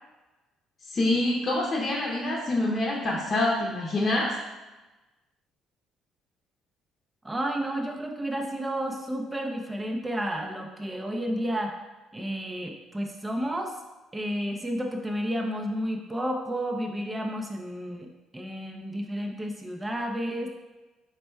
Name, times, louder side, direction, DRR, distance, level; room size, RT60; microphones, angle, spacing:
voice 1, 0.9-4.3, left 2 dB, 35° left, -4 dB, 0.7 m, -26 dB
voice 2, 7.2-11.7 12.1-13.8 14.1-20.5, equal, 15° right, 2 dB, 0.5 m, -31 dB
4.3 x 2.2 x 4.4 m, 1.1 s
cardioid pair, 85°, 0 cm